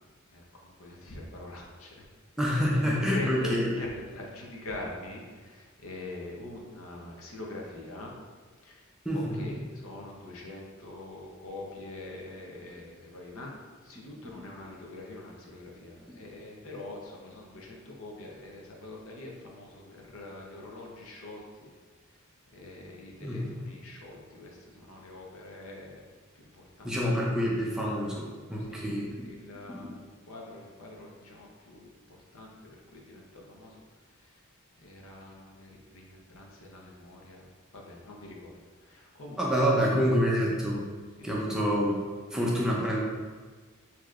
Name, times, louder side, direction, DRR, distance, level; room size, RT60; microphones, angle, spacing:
voice 1, 0.3-1.9 2.4-8.1 8.6-8.8 9.1-13.5 13.8-21.7 22.5-26.0 26.4-26.5 26.8-26.9 28.7-31.9 32.3-33.7 34.8-37.4 37.7-38.5 38.8-39.7 41.2-41.3, left 2 dB, 70° left, -1 dB, 0.8 m, -43 dB
voice 2, 2.4-3.7 9.0-9.6 14.2-14.5 16.1-16.2 23.2-23.5 26.8-29.3 29.7-29.9 39.4-40.8 41.2-42.0 42.3-43.0, equal, 5° right, -4 dB, 0.6 m, -27 dB
6.3 x 2.9 x 2.5 m, 1.4 s
head